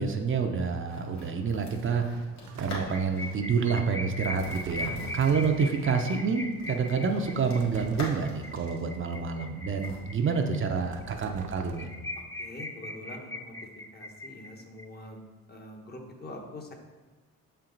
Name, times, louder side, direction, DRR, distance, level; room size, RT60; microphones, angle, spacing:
voice 1, 0.0-2.2 2.6-11.9, right 5 dB, 40° right, 4 dB, 0.6 m, -28 dB
sound 1, 0.9-3.5 3.7-3.9 4.2-10.0, left 1 dB, 60° left, 1.9 m, -43 dB
sound 2, 2.5-3.2 4.3-5.8 7.4-8.4 10.8-12.2, right 6 dB, 85° right, 0.6 m, -45 dB
sound 3, 2.7-10.6 11.0-11.1 11.4-11.5 11.7-14.8, left 2 dB, 10° left, 0.5 m, -40 dB
voice 2, 12.2-13.5 13.9-15.2 15.5-16.7, left 2 dB, 35° left, 2 dB, 1.1 m, -44 dB
6.9 x 4.4 x 3.9 m, 1.3 s
cardioid pair, 90°, 30 cm